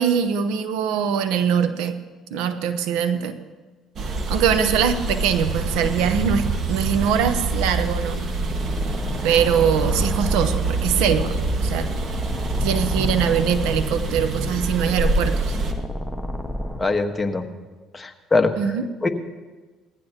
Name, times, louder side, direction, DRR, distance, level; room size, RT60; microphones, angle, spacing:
voice 1, 0.0-2.0 2.3-3.4 4.3-8.2 9.2-11.9 12.6-15.6 18.6-18.9, right 7 dB, 80° right, 11 dB, 0.9 m, -22 dB
sound 1, 4.0-15.7, right 3 dB, 50° right, 1.6 m, -25 dB
sound 2, 8.5-16.8, left 1 dB, ahead, 1.4 m, -31 dB
voice 2, 16.8-17.5 17.9-18.5 19.0-19.1, left 3 dB, 20° left, 5 dB, 1.3 m, -21 dB
20.0 x 15.0 x 2.9 m, 1.3 s
supercardioid pair, 75°, 0 cm